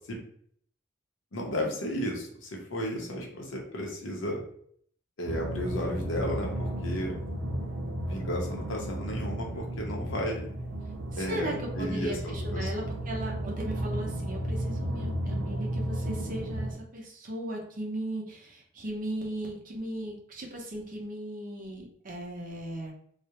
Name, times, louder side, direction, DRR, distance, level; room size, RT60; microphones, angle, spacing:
voice 1, 1.3-4.4 5.2-7.2 8.0-10.5 11.2-12.9, equal, 85° left, -1 dB, 0.7 m, -34 dB
sound 1, 5.2-16.7, right 1 dB, 90° right, 0.5 m, -33 dB
voice 2, 11.1-22.9, right 1 dB, 45° right, 0 dB, 0.6 m, -37 dB
2.4 x 2.0 x 2.8 m, 0.63 s
head